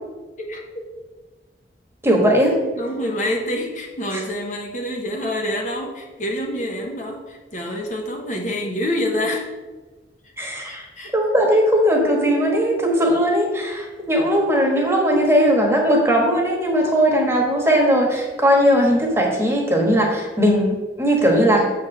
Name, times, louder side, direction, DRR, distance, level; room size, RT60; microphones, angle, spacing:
voice 1, 0.4-0.8 2.6-9.5 10.4-11.1, left 1 dB, 45° left, 1 dB, 1.1 m, -27 dB
voice 2, 2.0-2.6 10.4-10.8 11.1-21.7, equal, 15° right, 0 dB, 1.4 m, -18 dB
7.3 x 4.5 x 6.5 m, 1.3 s
head